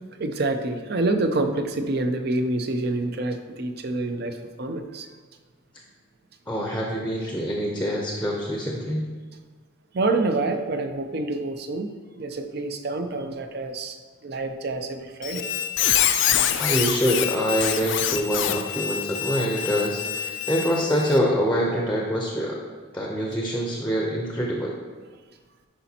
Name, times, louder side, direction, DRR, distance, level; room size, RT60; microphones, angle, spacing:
voice 1, 0.2-5.1 9.9-14.0 14.2-15.5, right 2 dB, 50° right, 7 dB, 0.5 m, -27 dB
voice 2, 6.5-9.1 16.6-22.6 22.9-24.8, equal, 10° left, -1 dB, 0.6 m, -25 dB
Squeak, 15.2-21.2, left 10 dB, 65° left, 0.4 m, -26 dB
9.9 x 5.1 x 2.8 m, 1.4 s
head